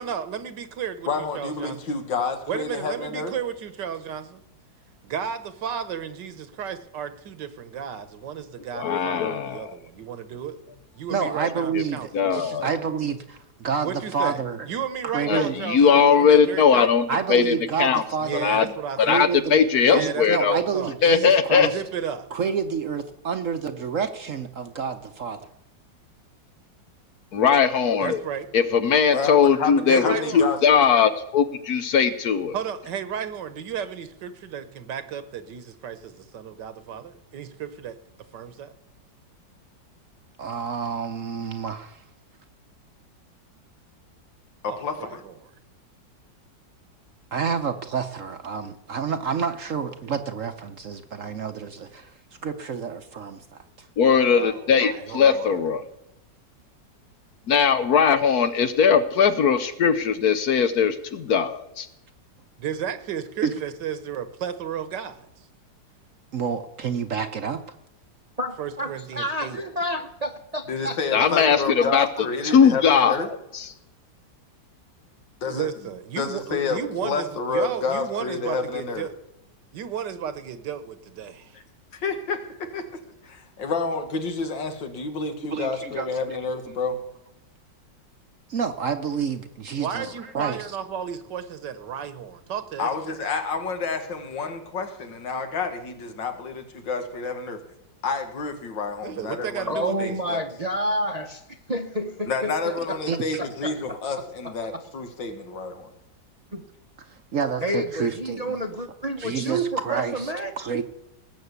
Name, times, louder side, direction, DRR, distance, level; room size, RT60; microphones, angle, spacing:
voice 1, 0.0-1.1 1.3-1.8 2.5-4.4 5.0-10.6 10.9-12.8 13.8-14.4 14.7-16.9 18.2-19.3 19.8-21.0 21.7-22.3 28.0-28.5 29.9-30.5 32.5-38.0 38.3-38.7 44.7-45.3 54.3-55.6 62.6-65.3 68.6-69.6 75.5-79.1 79.7-81.5 89.8-92.9 99.0-100.2, right 8 dB, 70° right, 12 dB, 1.6 m, -33 dB
voice 2, 1.1-3.3 29.1-30.6 44.6-45.2 70.7-73.3 75.4-75.7 76.2-79.1 81.5-81.6 81.9-87.0 90.0-90.1 92.8-97.6 98.0-100.5 102.3-105.9, left 4 dB, 80° left, 7 dB, 2.3 m, -29 dB
voice 3, 8.7-9.8 11.7-11.8 12.1-12.7 15.3-18.0 18.4-18.7 19.0-20.6 21.0-21.7 27.3-28.2 28.5-32.5 54.0-55.8 57.5-61.9 71.1-72.1 72.4-73.2 73.5-73.7, left 6 dB, 60° left, 11 dB, 1.2 m, -19 dB
voice 4, 11.1-14.7 15.0-15.5 17.1-18.5 19.0-19.6 19.9-21.8 22.3-25.4 40.4-42.0 47.3-52.1 52.4-53.4 53.8-53.9 55.2-55.4 63.4-63.5 66.3-67.6 85.4-86.4 88.5-90.6 103.1-103.4 107.3-108.6 109.2-110.8, right 6 dB, 55° right, 8 dB, 1.0 m, -29 dB
voice 5, 68.4-71.3 99.7-101.4 101.7-103.0 103.4-104.0 104.4-104.5 106.5-106.6 107.6-110.5, right 1 dB, 30° right, 5 dB, 0.7 m, -29 dB
19.0 x 6.4 x 8.2 m, 0.86 s
omnidirectional pair, 2.0 m